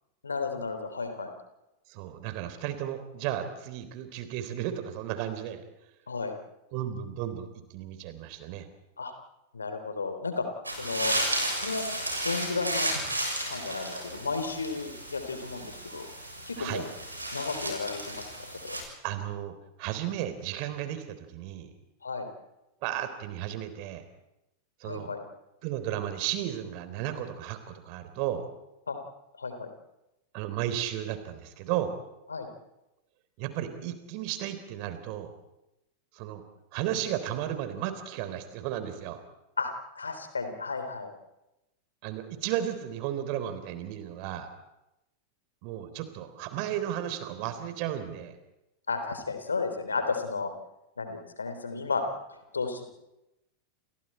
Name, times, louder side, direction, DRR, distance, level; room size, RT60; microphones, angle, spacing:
voice 1, 0.2-1.3 6.1-6.3 9.0-9.1 9.5-10.5 10.8-11.2 11.6-11.8 12.2-12.9 13.5-16.1 16.5-16.9 17.3-18.8 22.0-22.3 24.8-25.2 28.9-29.0 29.4-29.7 32.3-32.5 39.6-41.1 48.9-50.5 51.0-52.0 52.5-52.8, left 4 dB, 75° left, 7 dB, 3.7 m, -33 dB
voice 2, 1.9-5.6 6.7-8.7 16.6-16.9 19.0-19.5 19.8-21.7 22.8-24.0 24.8-25.1 25.6-28.5 30.3-31.9 33.4-35.3 36.1-36.4 36.7-39.2 42.0-44.5 45.6-48.3, right 11 dB, 45° right, 10 dB, 3.7 m, -34 dB
sound 1, 10.6-18.8, right 1 dB, 85° right, 6.8 m, -33 dB
30.0 x 29.5 x 4.5 m, 0.93 s
figure-of-eight pair, 90°, 0 cm